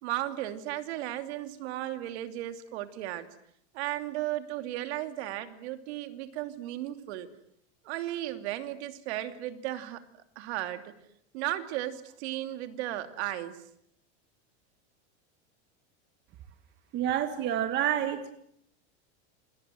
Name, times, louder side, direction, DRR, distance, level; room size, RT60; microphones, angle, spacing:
voice 1, 0.0-3.3 3.7-7.3 7.8-10.0 10.4-10.9 11.3-13.6, right 14 dB, 60° right, 8 dB, 3.0 m, -35 dB
voice 2, 16.9-18.3, right 11 dB, 30° right, 8 dB, 1.7 m, -28 dB
28.0 x 27.0 x 7.8 m, 0.70 s
supercardioid pair, 170°, 36 cm